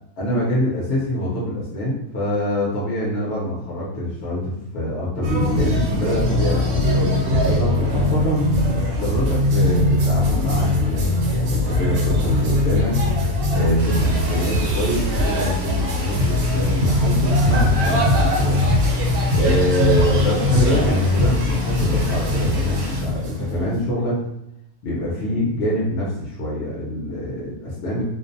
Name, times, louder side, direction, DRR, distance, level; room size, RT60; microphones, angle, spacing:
voice 1, 0.2-8.5 9.0-13.0 13.5-18.6 19.3-24.2 24.8-28.0, left 1 dB, 60° left, -5 dB, 0.7 m, -25 dB
sound 1, 5.2-23.8, left 1 dB, 85° right, 1.1 m, -20 dB
sound 2, 13.8-23.0, right 1 dB, 65° right, 0.8 m, -35 dB
2.5 x 2.0 x 2.6 m, 0.80 s
omnidirectional pair, 1.5 m